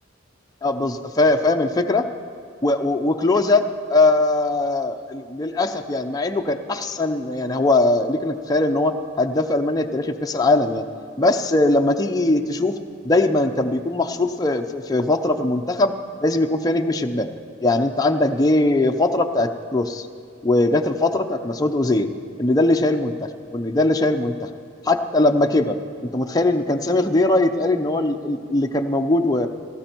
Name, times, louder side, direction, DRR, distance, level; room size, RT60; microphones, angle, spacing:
voice 1, 0.6-2.1 2.6-10.9 11.2-12.8 13.0-15.9 16.2-17.3 17.6-20.1 20.4-22.1 22.4-24.5 24.8-25.8 26.1-29.5, left 2 dB, 20° left, 4 dB, 0.6 m, -20 dB
18.5 x 14.5 x 4.5 m, 2.2 s
head